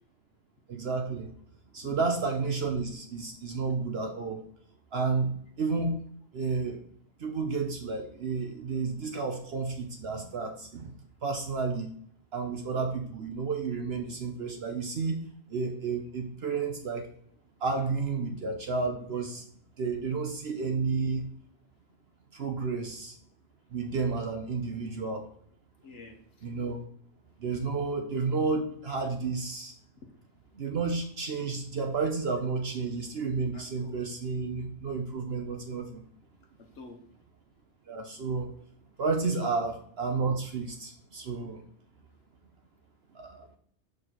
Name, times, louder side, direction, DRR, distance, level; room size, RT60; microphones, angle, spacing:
voice 1, 0.7-1.3 1.7-4.4 4.9-5.9 6.3-6.8 7.2-10.9 11.2-11.9 12.3-15.2 15.5-17.1 17.6-19.4 19.8-21.2 22.3-23.1 23.7-25.3 26.4-26.8 27.4-29.7 30.5-36.0 37.9-38.5 39.0-41.6 43.1-43.4, right 4 dB, 60° right, 4 dB, 1.0 m, -31 dB
voice 2, 25.8-26.5 33.5-34.0 36.6-37.0 39.4-39.5, left 2 dB, 70° left, 3 dB, 1.2 m, -48 dB
6.2 x 5.0 x 4.2 m, 0.63 s
omnidirectional pair, 1.3 m